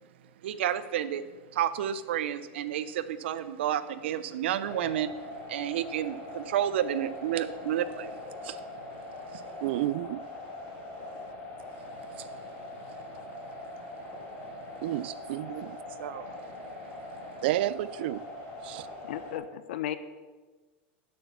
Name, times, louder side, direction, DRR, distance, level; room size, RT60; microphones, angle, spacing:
voice 1, 0.4-1.2 1.5-5.1 5.5-9.0 9.3-9.5 12.1-12.4 12.9-13.2 13.8-15.1 15.5-17.4, right 10 dB, 80° right, 0.7 m, -32 dB
sound 1, 4.6-19.4, left 2 dB, 30° left, 2.3 m, -42 dB
voice 2, 9.6-10.2 14.8-15.8 17.4-18.2 18.6-18.9, right 15 dB, 60° right, 0.3 m, -30 dB
voice 3, 19.0-19.9, left 12 dB, 75° left, 0.8 m, -34 dB
11.5 x 7.8 x 5.8 m
supercardioid pair, 160°, 6 cm